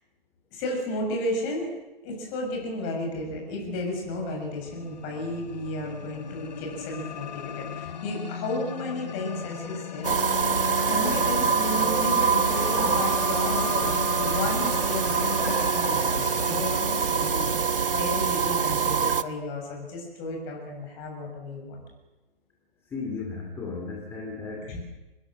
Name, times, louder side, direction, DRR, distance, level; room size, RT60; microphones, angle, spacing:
voice 1, 0.5-1.7 2.0-10.3 10.8-21.8 24.6-24.8, left 1 dB, 25° left, 1 dB, 7.0 m, -33 dB
sound 1, 4.2-17.3, left 7 dB, 45° left, 1.6 m, -36 dB
sound 2, 10.0-19.2, right 6 dB, 65° right, 1.2 m, -25 dB
voice 2, 22.9-24.8, left 4 dB, 10° left, 0 dB, 2.4 m, -35 dB
26.0 x 21.0 x 7.7 m, 1.1 s
figure-of-eight pair, 135°, 29 cm